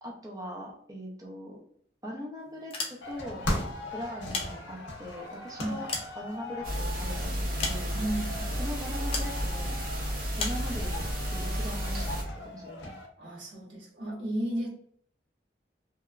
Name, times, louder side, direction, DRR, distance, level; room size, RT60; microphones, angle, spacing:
voice 1, 0.0-1.6 2.0-3.4 3.9-5.9 6.2-7.9 8.6-9.8 10.4-12.9, equal, 20° right, -2 dB, 0.5 m, -40 dB
sound 1, 2.6-3.4 4.1-5.1 5.6-6.8 7.6-8.2 9.1-9.4 10.4-10.7, left 4 dB, 30° left, 0.4 m, -36 dB
sound 2, 3.0-13.1, left 1 dB, 75° left, 0.7 m, -39 dB
sound 3, 6.6-12.2, equal, 50° right, 0.7 m, -32 dB
voice 2, 7.9-8.5 13.2-14.7, right 1 dB, 85° right, -3 dB, 1.0 m, -33 dB
2.9 x 2.2 x 2.3 m, 0.62 s
head